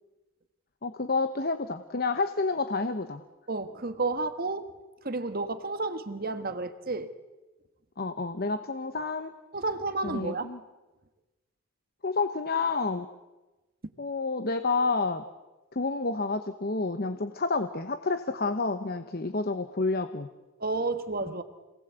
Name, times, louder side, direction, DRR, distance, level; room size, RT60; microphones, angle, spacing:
voice 1, 0.8-3.2 8.0-9.3 10.0-10.6 12.0-13.1 14.0-15.2 15.7-20.3, left 3 dB, 45° left, 10 dB, 0.9 m, -29 dB
voice 2, 3.5-4.7 5.0-7.1 9.5-10.5 20.6-21.4, right 3 dB, 40° right, 10 dB, 1.4 m, -31 dB
27.0 x 19.0 x 8.1 m, 1.1 s
head